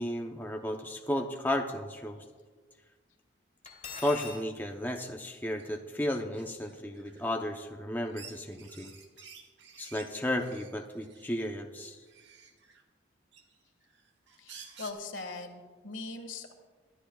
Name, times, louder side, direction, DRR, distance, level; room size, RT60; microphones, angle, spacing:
voice 1, 0.0-2.2 3.9-8.9 9.8-12.0, left 1 dB, 10° left, 2 dB, 0.7 m, -33 dB
Cutlery silverware, 3.7-4.4, left 5 dB, 35° left, 2.5 m, -41 dB
sound 1, 5.6-5.8 6.1-7.4 8.0-11.4 12.0-12.8 13.3-14.9, right 6 dB, 70° right, 1.3 m, -52 dB
voice 2, 14.4-16.5, left 3 dB, 85° left, 5 dB, 1.8 m, -41 dB
23.5 x 13.0 x 2.3 m, 1.5 s
head